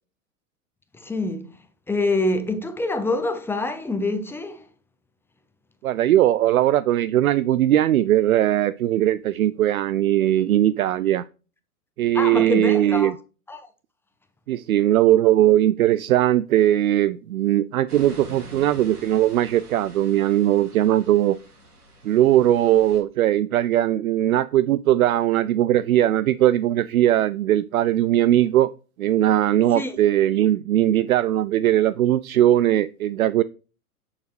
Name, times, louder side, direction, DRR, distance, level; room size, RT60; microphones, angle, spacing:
voice 1, 1.0-1.5 1.9-4.7 12.1-13.1 13.5-13.7 29.7-30.0, left 2 dB, 5° left, 0.8 m, -26 dB
voice 2, 5.8-11.2 12.0-13.1 14.5-21.4 22.0-28.7 29.0-33.4, right 12 dB, 70° right, 0.5 m, -19 dB
sound 1, 17.9-23.0, right 1 dB, 85° right, 3.1 m, -45 dB
8.4 x 6.8 x 3.2 m
figure-of-eight pair, 110°, 44 cm